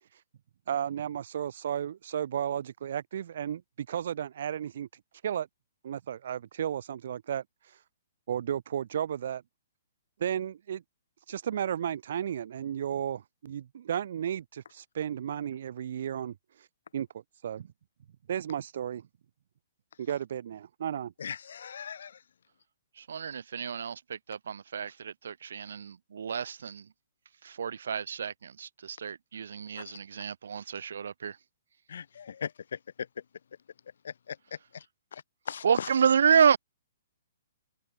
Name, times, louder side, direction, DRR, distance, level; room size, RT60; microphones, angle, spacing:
voice 1, 0.7-4.9 5.2-5.5 5.8-7.4 8.3-9.4 10.2-10.8 11.3-16.4 16.9-17.1 17.4-17.7 18.3-19.1 20.0-21.1, right 9 dB, 55° right, 7.1 m, -33 dB
voice 2, 21.2-22.2 29.7-29.9 31.9-33.1 34.0-34.8 35.1-35.9, left 7 dB, 70° left, 3.2 m, -39 dB
voice 3, 23.0-26.9 27.4-31.4 35.6-36.6, right 7 dB, 75° right, 4.8 m, -29 dB
open air
hypercardioid pair, 170°, 0 cm